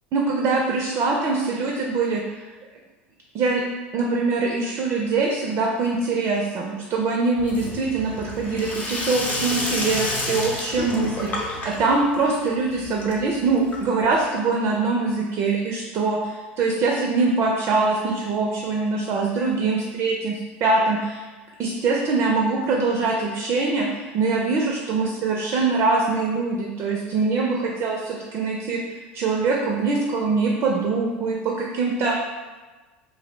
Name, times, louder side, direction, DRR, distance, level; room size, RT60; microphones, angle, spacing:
voice 1, 0.1-2.2 3.3-3.6 3.9-11.3 11.6-21.3 21.6-28.8 29.1-32.3, right 3 dB, 45° right, -1 dB, 0.4 m, -23 dB
Sink (filling or washing), 7.4-14.2, left 2 dB, 25° left, 0.6 m, -30 dB
2.6 x 2.0 x 3.0 m, 1.3 s
hypercardioid pair, 80°, 6 cm